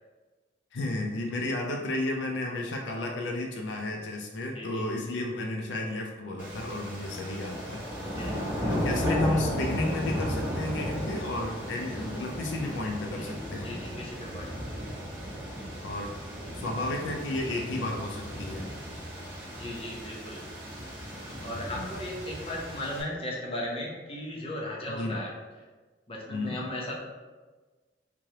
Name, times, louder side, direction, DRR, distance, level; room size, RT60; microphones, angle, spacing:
voice 1, 0.7-7.8 8.7-13.7 15.8-16.1 16.5-18.7 21.5-21.9 25.0-25.2 26.3-26.6, left 2 dB, 80° left, 2 dB, 0.4 m, -32 dB
voice 2, 4.5-4.9 8.2-8.7 13.2-13.4 13.6-14.6 19.5-20.5 21.4-25.3 25.6-25.7 26.1-26.9, left 1 dB, 30° left, -3 dB, 0.8 m, -37 dB
sound 1, 6.4-23.0, equal, 10° right, 1.0 m, -35 dB
3.7 x 3.1 x 2.8 m, 1.3 s
head